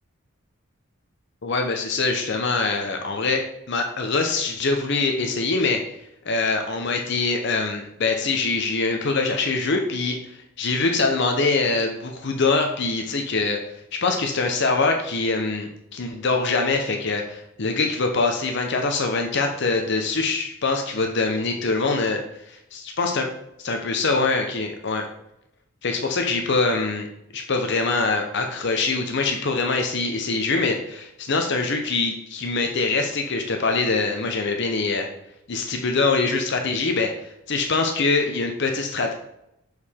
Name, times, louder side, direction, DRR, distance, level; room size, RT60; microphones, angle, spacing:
voice 1, 1.4-5.8 6.2-13.6 13.9-23.2 23.6-25.1 25.8-27.1 27.3-35.1 35.5-39.1, left 3 dB, 55° left, 4 dB, 0.7 m, -24 dB
6.5 x 4.7 x 3.6 m, 0.81 s
head